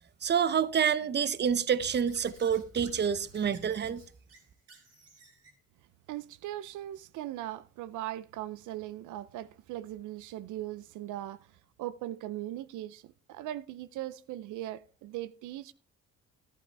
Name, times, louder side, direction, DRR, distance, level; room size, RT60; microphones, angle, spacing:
voice 1, 0.2-4.0, right 7 dB, 35° right, 0.7 m, -28 dB
Squeak / Writing, 1.8-5.6, right 3 dB, 55° right, 2.9 m, -52 dB
voice 2, 6.1-11.4 11.8-13.0 13.3-15.7, right 14 dB, 80° right, 0.5 m, -39 dB
11.5 x 11.0 x 3.4 m
cardioid pair, 90°, 30 cm